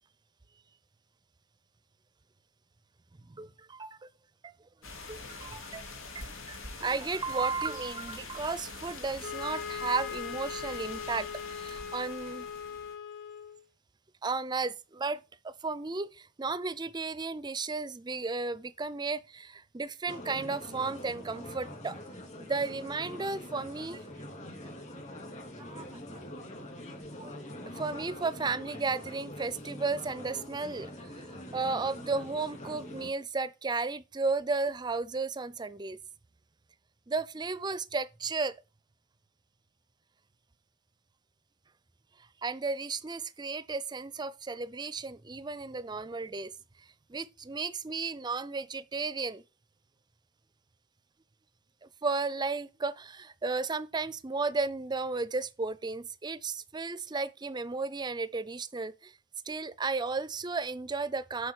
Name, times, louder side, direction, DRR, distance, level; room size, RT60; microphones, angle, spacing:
voice 1, 3.2-4.1 5.1-5.8 6.1-12.5 14.2-22.0 22.4-24.1 25.6-25.9 27.2-27.3 27.7-36.0 37.1-38.5 42.4-46.5 47.1-49.4 51.8-59.1 59.5-61.5, right 4 dB, 20° right, 0.5 m, -34 dB
sound 1, 4.8-13.0, left 3 dB, 90° left, 2.5 m, -45 dB
sound 2, 9.2-13.6, left 7 dB, 55° left, 2.0 m, -40 dB
sound 3, 20.1-33.1, left 1 dB, 35° left, 2.5 m, -44 dB
8.0 x 5.2 x 6.3 m
head